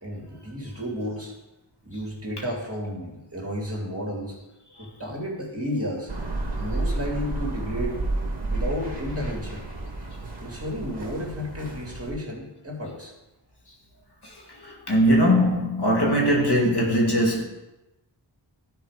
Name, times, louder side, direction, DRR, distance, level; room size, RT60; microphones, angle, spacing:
voice 1, 0.0-1.3 1.8-4.4 4.8-6.1 6.6-8.0 8.4-9.6 10.4-13.1, equal, 30° right, 2.4 m, -32 dB
sound 1, 6.1-12.1, right 2 dB, 60° right, 1.9 m, -31 dB
voice 2, 14.6-17.4, equal, 60° left, 2.1 m, -21 dB
12.0 x 4.6 x 4.9 m
wide cardioid pair, 60°, 45 cm